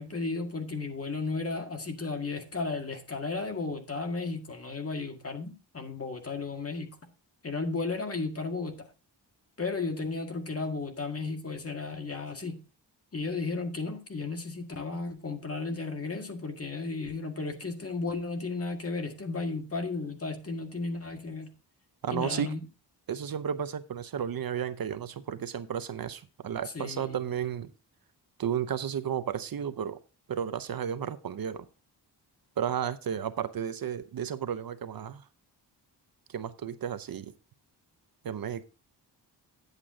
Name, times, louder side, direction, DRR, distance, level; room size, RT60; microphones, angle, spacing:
voice 1, 0.0-7.0 7.4-8.9 9.6-12.6 13.1-21.5 22.1-22.6 26.7-27.2, left 3 dB, 35° left, 1.9 m, -34 dB
voice 2, 22.0-22.5 23.1-27.7 28.4-30.0 30.3-31.7 32.6-35.2 36.3-37.3 38.2-38.6, right 8 dB, 55° right, 0.7 m, -33 dB
9.9 x 8.2 x 3.7 m
cardioid pair, 100°, 42 cm